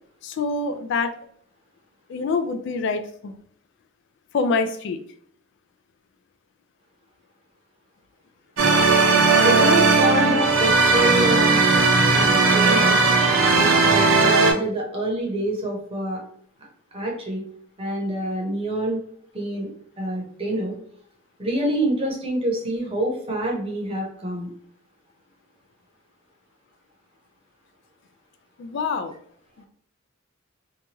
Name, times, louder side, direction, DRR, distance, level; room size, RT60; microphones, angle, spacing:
voice 1, 0.2-1.1 2.1-3.4 4.3-5.0 28.6-29.2, left 4 dB, 60° left, 8 dB, 0.3 m, -25 dB
sound 1, 8.6-14.5, right 3 dB, 70° right, 0.7 m, -17 dB
voice 2, 9.4-11.6 12.1-13.0 13.6-16.2 16.9-17.4 17.8-19.0 19.3-19.7 20.0-20.8 21.4-24.5, right 1 dB, 30° right, -1 dB, 0.8 m, -26 dB
2.8 x 2.2 x 2.9 m, 0.62 s
head